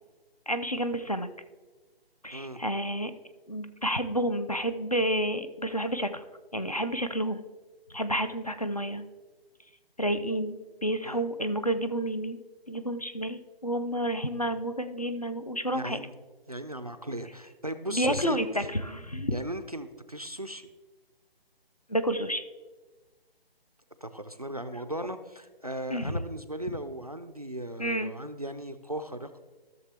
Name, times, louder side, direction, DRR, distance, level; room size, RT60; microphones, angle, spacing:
voice 1, 0.5-1.3 2.2-3.1 3.5-6.2 6.5-7.4 7.9-9.1 10.0-12.4 12.7-16.0 17.9-19.4 21.9-22.4 25.9-26.1 27.8-28.1, equal, 40° left, 9 dB, 0.4 m, -30 dB
voice 2, 15.7-16.1 16.5-18.7 19.3-20.7 24.0-29.3, right 1 dB, 40° right, 9 dB, 0.4 m, -37 dB
14.0 x 6.7 x 3.3 m, 1.3 s
hypercardioid pair, 180°, 30 cm